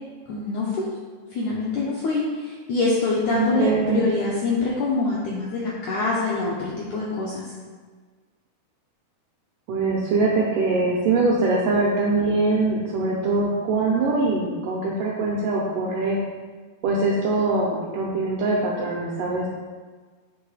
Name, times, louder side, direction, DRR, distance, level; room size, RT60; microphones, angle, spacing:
voice 1, 0.3-0.9 1.3-7.5, left 3 dB, 80° left, -5 dB, 1.7 m, -25 dB
voice 2, 3.3-4.0 9.7-16.2 16.8-19.5, right 3 dB, 80° right, -3 dB, 1.9 m, -23 dB
8.6 x 3.1 x 4.8 m, 1.4 s
omnidirectional pair, 4.5 m